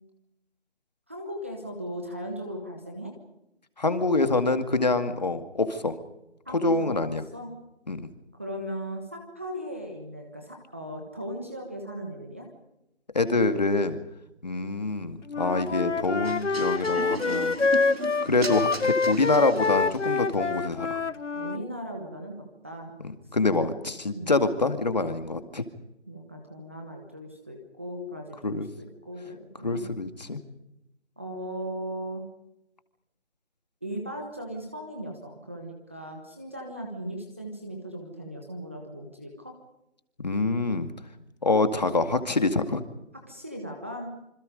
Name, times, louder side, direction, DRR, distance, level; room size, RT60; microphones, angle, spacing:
voice 1, 1.1-3.1 6.4-7.5 8.3-12.5 21.3-22.9 23.5-23.8 24.1-24.3 26.1-29.8 31.2-32.3 33.8-39.5 43.3-44.1, equal, 10° right, 2 dB, 1.4 m, -38 dB
voice 2, 3.8-5.9 6.5-7.2 7.9-8.1 13.1-14.0 14.4-17.6 18.2-21.0 23.0-25.6 28.4-28.7 29.6-30.4 40.2-40.9 41.4-42.8, left 3 dB, 35° left, 9 dB, 2.2 m, -25 dB
Wind instrument woodwind instrument, 15.3-21.6, left 4 dB, 90° left, 1.1 m, -26 dB
sound 1, 16.2-20.2, right 3 dB, 60° right, 1.9 m, -37 dB
27.0 x 26.5 x 5.2 m, 0.87 s
figure-of-eight pair, 175°, 35 cm